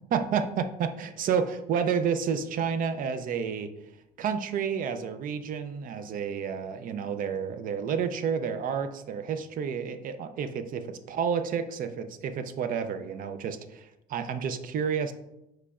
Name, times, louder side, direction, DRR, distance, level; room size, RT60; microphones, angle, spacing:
voice 1, 0.1-3.7 4.2-15.1, right 7 dB, 55° right, 9 dB, 0.4 m, -30 dB
4.8 x 4.3 x 2.4 m, 0.87 s
cardioid pair, 110°, 17 cm